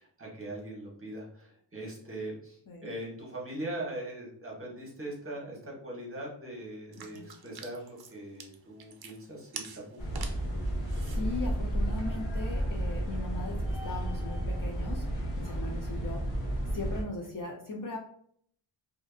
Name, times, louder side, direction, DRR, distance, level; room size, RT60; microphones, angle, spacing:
voice 1, 0.0-10.2, right 1 dB, 25° right, -3 dB, 1.0 m, -41 dB
sound 1, 6.9-12.0, right 5 dB, 50° right, 0.5 m, -48 dB
sound 2, 10.0-17.0, right 1 dB, 60° left, 1.0 m, -32 dB
voice 2, 11.1-13.6 13.8-15.0 15.4-16.4 16.7-18.0, left 3 dB, 45° left, 0 dB, 0.4 m, -38 dB
2.6 x 2.5 x 2.3 m, 0.63 s
wide cardioid pair, 85°, 50 cm